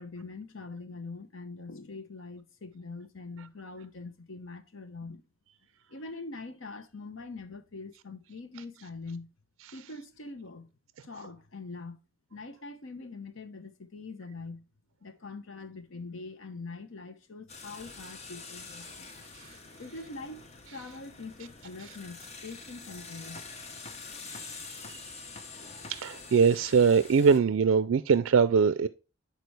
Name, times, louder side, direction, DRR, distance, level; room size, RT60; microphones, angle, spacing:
voice 1, 0.0-5.2 5.9-9.3 9.7-10.7 11.0-12.0 12.3-14.6 15.0-19.1 19.8-23.4, left 3 dB, 70° left, 0.9 m, -43 dB
sound 1, 17.5-27.4, left 4 dB, 30° left, 0.8 m, -46 dB
voice 2, 25.9-28.9, right 5 dB, 70° right, 0.4 m, -22 dB
10.5 x 4.4 x 3.3 m
head